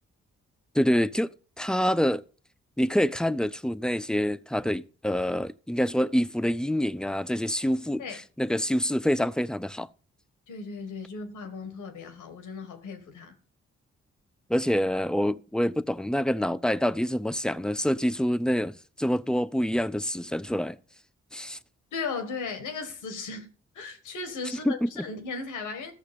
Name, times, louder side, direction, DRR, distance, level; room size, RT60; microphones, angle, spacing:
voice 1, 0.7-1.3 1.6-2.2 2.8-9.9 14.5-20.8 21.3-21.6 24.6-25.1, equal, 5° left, 0.7 m, -26 dB
voice 2, 10.5-13.3 21.9-25.9, left 4 dB, 85° left, 1.9 m, -36 dB
14.0 x 6.4 x 5.3 m
supercardioid pair, 45°, 30 cm